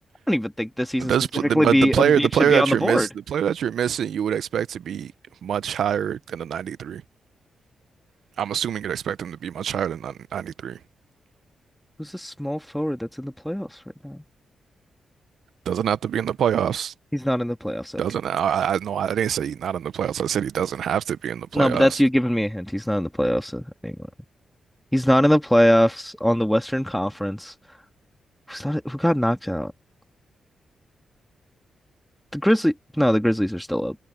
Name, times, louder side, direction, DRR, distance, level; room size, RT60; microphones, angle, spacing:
voice 1, 0.3-1.1 1.4-3.1 12.0-13.8 14.0-14.2 17.1-18.0 21.5-24.0 24.9-27.5 28.5-29.7 32.3-33.9, equal, 5° left, 1.6 m, -22 dB
voice 2, 1.0-5.1 5.4-7.0 8.4-10.8 15.7-16.9 18.0-22.0, right 9 dB, 75° right, 0.5 m, -25 dB
cardioid pair, 105°, 0 cm